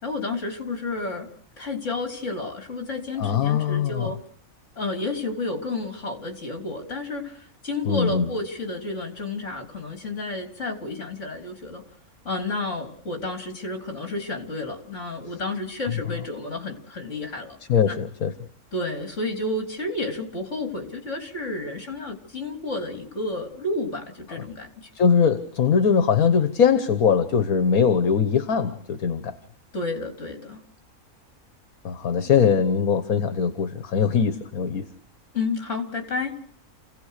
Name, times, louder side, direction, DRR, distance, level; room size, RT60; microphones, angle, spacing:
voice 1, 0.0-1.3 1.6-4.2 4.8-11.8 12.2-17.6 17.9-18.0 18.7-24.7 29.7-30.6 35.3-36.3, left 2 dB, 55° left, 4 dB, 3.9 m, -31 dB
voice 2, 3.2-4.1 7.8-8.2 17.7-18.3 24.3-24.4 24.9-29.4 31.8-34.9, left 6 dB, 75° left, 10 dB, 1.6 m, -21 dB
29.5 x 16.5 x 6.6 m, 0.62 s
omnidirectional pair, 1.5 m